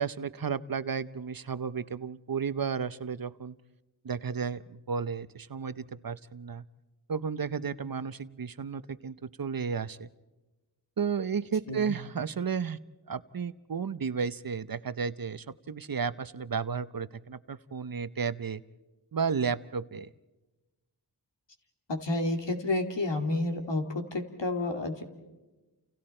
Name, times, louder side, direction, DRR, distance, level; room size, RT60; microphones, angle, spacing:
voice 1, 0.0-3.5 4.0-6.6 7.1-10.1 11.0-12.8 13.1-18.6 19.1-20.1, right 6 dB, 55° right, 15 dB, 0.8 m, -33 dB
voice 2, 21.9-25.0, left 2 dB, 80° left, 4 dB, 2.6 m, -30 dB
30.0 x 29.0 x 4.4 m, 1.1 s
wide cardioid pair, 50°, 42 cm